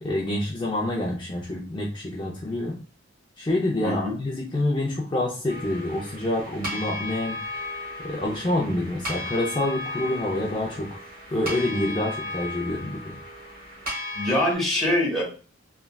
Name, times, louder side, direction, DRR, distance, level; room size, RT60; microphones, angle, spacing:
voice 1, 0.0-2.7 3.4-7.4 8.0-11.0 11.3-13.2, left 1 dB, 25° left, -4 dB, 0.5 m, -27 dB
voice 2, 3.8-4.1 14.1-15.2, left 1 dB, ahead, -5 dB, 1.0 m, -23 dB
sound 1, 5.5-14.6, left 2 dB, 45° right, 1.2 m, -35 dB
3.3 x 2.3 x 2.2 m, 0.39 s
head